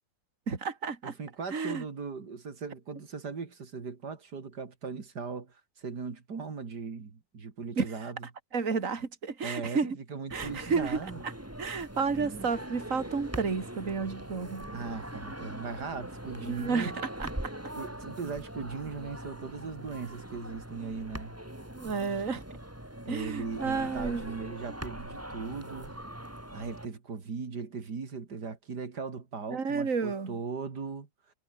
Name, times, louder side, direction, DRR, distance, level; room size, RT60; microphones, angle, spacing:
voice 1, 0.5-1.1 1.5-1.8 7.8-7.9 8.5-9.9 10.3-11.3 11.6-14.7 16.4-16.9 17.2-17.3 21.8-22.4 23.1-24.2 29.5-30.4, right 5 dB, 55° right, 2.9 m, -31 dB
voice 2, 1.0-8.2 9.4-11.2 12.1-12.5 14.7-17.0 17.7-21.3 23.0-25.9 26.5-31.1, right 5 dB, 85° right, 3.2 m, -39 dB
sound 1, 10.3-26.9, right 1 dB, 10° right, 3.6 m, -42 dB
omnidirectional pair, 1.7 m